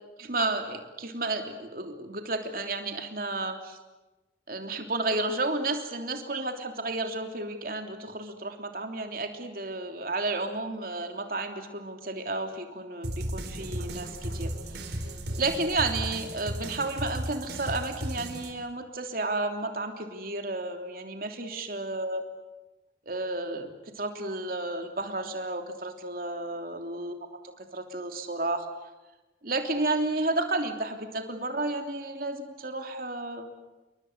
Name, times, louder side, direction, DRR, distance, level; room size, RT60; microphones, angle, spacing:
voice 1, 0.2-3.8 4.5-15.0 15.4-22.2 23.1-23.7 24.0-28.7 29.4-33.5, right 2 dB, 50° right, 5 dB, 3.2 m, -32 dB
sound 1, 13.0-18.5, right 1 dB, 70° right, 4.2 m, -35 dB
29.0 x 23.5 x 8.1 m, 1.1 s
head